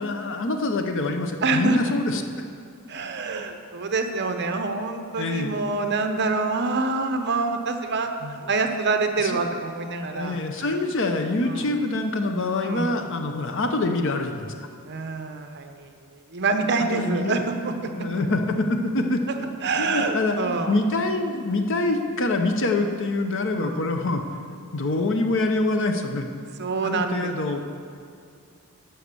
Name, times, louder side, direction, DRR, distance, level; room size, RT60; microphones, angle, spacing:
voice 1, 0.0-2.2 5.2-5.5 8.2-8.4 9.2-9.4 10.0-14.5 16.8-17.5 17.9-19.5 19.8-26.3 26.8-27.6, left 2 dB, 60° left, 5 dB, 0.8 m, -25 dB
voice 2, 1.4-1.8 2.9-11.0 11.4-11.7 12.6-13.0 14.9-15.9 16.3-17.9 19.6-20.8 23.6-23.9 26.6-27.6, right 3 dB, 50° right, 6 dB, 0.8 m, -26 dB
11.5 x 5.9 x 6.8 m, 2.4 s
head